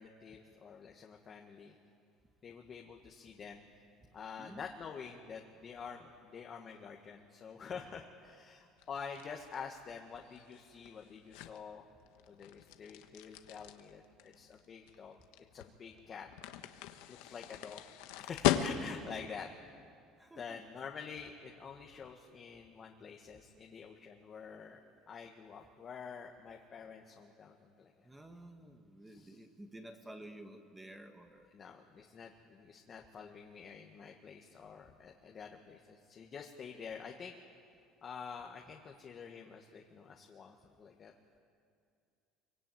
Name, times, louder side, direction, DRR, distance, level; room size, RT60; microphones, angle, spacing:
voice 1, 0.0-1.8 2.4-3.7 4.1-11.9 12.3-15.2 15.5-16.3 17.1-17.9 18.2-19.5 20.4-24.8 25.1-27.9 29.1-29.4 31.5-37.3 38.0-41.1, left 6 dB, 35° left, 1 dB, 1.7 m, -48 dB
sound 1, 8.8-19.2, left 12 dB, 90° left, 1.3 m, -39 dB
voice 2, 20.2-20.6 28.0-31.5, right 1 dB, 10° right, 5 dB, 1.6 m, -52 dB
24.0 x 24.0 x 9.3 m, 2.4 s
cardioid pair, 135°, 0 cm